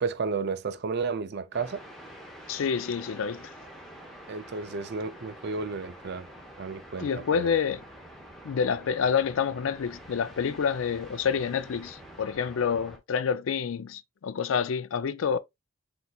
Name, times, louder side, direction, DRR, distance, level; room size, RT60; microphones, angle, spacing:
voice 1, 0.0-1.8 4.3-6.3 6.6-7.6, right 4 dB, 50° right, 0.4 m, -32 dB
sound 1, 1.5-13.0, equal, ahead, 0.9 m, -47 dB
voice 2, 2.5-3.5 7.0-7.8 8.4-15.4, left 6 dB, 70° left, 0.4 m, -28 dB
4.3 x 3.8 x 2.3 m
head